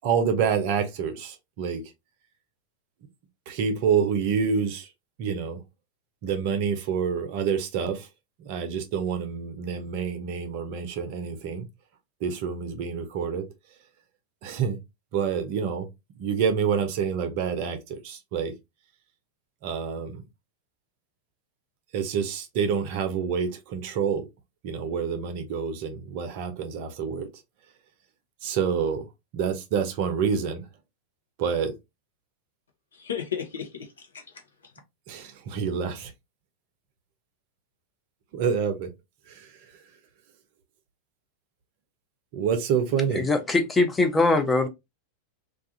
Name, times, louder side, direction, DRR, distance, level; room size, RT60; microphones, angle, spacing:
voice 1, 0.0-1.8 3.5-4.9 5.2-5.6 6.2-8.1 8.4-11.6 12.2-13.4 14.4-14.8 15.1-15.9 16.2-18.5 19.6-20.2 21.9-24.2 24.6-27.3 28.4-29.0 29.3-30.6 31.4-31.7 35.1-36.1 38.3-38.9 39.3-39.5 42.3-43.2, right 6 dB, 45° right, 0.6 m, -27 dB
voice 2, 32.9-34.2 34.6-34.7, left 8 dB, 70° left, 0.7 m, -34 dB
voice 3, 43.1-44.7, left 3 dB, 10° left, 0.5 m, -22 dB
2.4 x 2.3 x 2.7 m
figure-of-eight pair, 90°, 0 cm